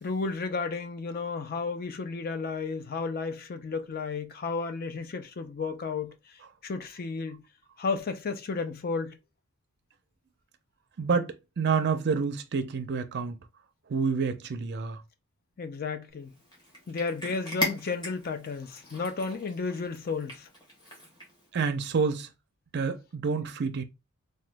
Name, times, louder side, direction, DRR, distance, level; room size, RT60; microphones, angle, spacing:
voice 1, 0.0-7.4 7.8-9.2 15.6-16.3 16.9-20.5, left 4 dB, 45° left, 0.4 m, -33 dB
voice 2, 11.0-13.4 13.9-15.0 21.5-22.3 22.7-23.8, right 5 dB, 50° right, 0.4 m, -28 dB
Cat, 16.3-21.5, left 1 dB, 20° left, 1.2 m, -38 dB
2.9 x 2.2 x 3.3 m
head